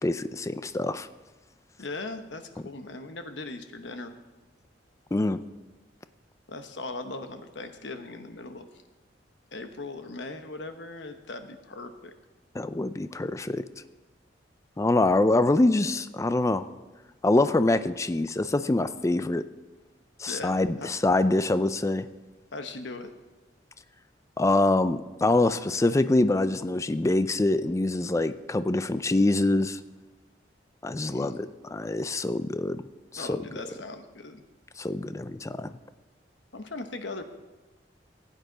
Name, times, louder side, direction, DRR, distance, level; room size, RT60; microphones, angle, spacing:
voice 1, 0.0-1.1 5.1-5.4 12.6-13.6 14.8-16.7 17.2-19.4 20.2-22.1 24.4-29.8 30.8-32.8 33.1-33.4 34.8-35.7, left 2 dB, 15° left, 12 dB, 0.4 m, -25 dB
voice 2, 1.8-4.2 6.5-8.7 9.5-12.1 20.3-20.5 20.8-20.9 22.5-23.1 31.1-31.4 33.2-34.4 36.5-37.2, left 2 dB, 75° left, 8 dB, 1.0 m, -39 dB
15.5 x 9.0 x 3.9 m, 1.2 s
head